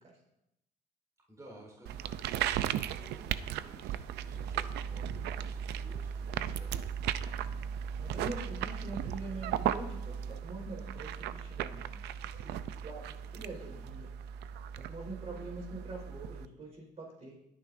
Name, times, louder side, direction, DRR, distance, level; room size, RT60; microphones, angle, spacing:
voice 1, 1.3-7.0, right 1 dB, 20° right, -2 dB, 4.3 m, -55 dB
sound 1, 1.9-16.5, right 9 dB, 80° right, 0.6 m, -36 dB
voice 2, 8.0-12.0 12.3-14.1 14.7-17.4, right 2 dB, 40° right, -1 dB, 4.8 m, -44 dB
21.5 x 9.8 x 2.7 m, 0.84 s
cardioid pair, 110°, 17 cm